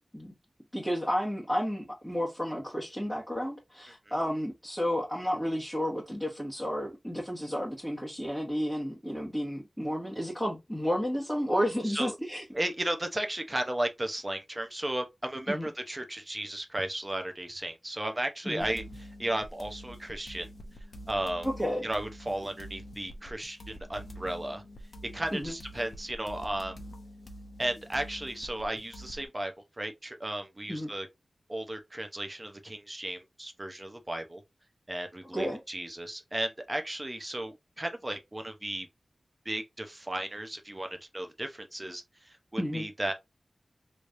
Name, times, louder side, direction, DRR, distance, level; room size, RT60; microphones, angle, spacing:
voice 1, 0.7-12.4 15.5-15.7 18.4-18.6 21.4-21.9 25.3-25.6 30.7-30.9 35.3-35.6 42.6-42.8, equal, 5° left, 1.5 m, -32 dB
voice 2, 12.5-20.5 21.1-21.5 21.8-24.6 25.1-26.8 27.6-31.1 31.5-34.4 34.9-38.9 39.4-43.1, right 1 dB, 25° right, 0.8 m, -35 dB
sound 1, 18.6-29.3, equal, 55° left, 0.9 m, -46 dB
3.3 x 3.1 x 2.6 m
wide cardioid pair, 65°, 0 cm